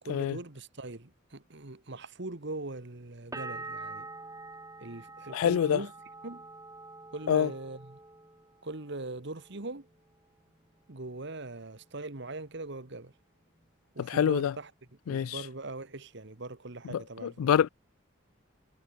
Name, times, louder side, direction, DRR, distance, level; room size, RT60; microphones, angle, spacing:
voice 1, 0.0-4.1 4.8-5.9 6.2-6.5 7.1-8.0 8.6-9.9 10.9-13.1 13.9-14.7 15.1-17.5, right 2 dB, 55° right, 1.5 m, -41 dB
sound 1, 3.3-9.0 9.3-10.0, right 3 dB, 15° right, 1.6 m, -45 dB
voice 2, 5.3-5.8 7.3-7.5 14.0-14.5 15.1-15.4 16.9-17.7, left 8 dB, 85° left, 0.3 m, -26 dB
head